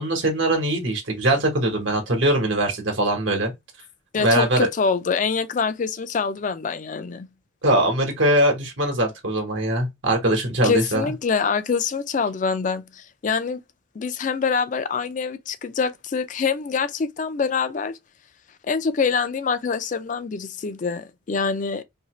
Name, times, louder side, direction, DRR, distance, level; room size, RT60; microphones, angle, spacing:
voice 1, 0.0-3.5 4.2-4.7 7.6-11.0, right 1 dB, 75° right, 1.1 m, -21 dB
voice 2, 4.1-7.3 10.6-13.6 14.0-17.9 18.7-21.8, left 5 dB, 40° left, 0.4 m, -25 dB
2.8 x 2.7 x 2.9 m
head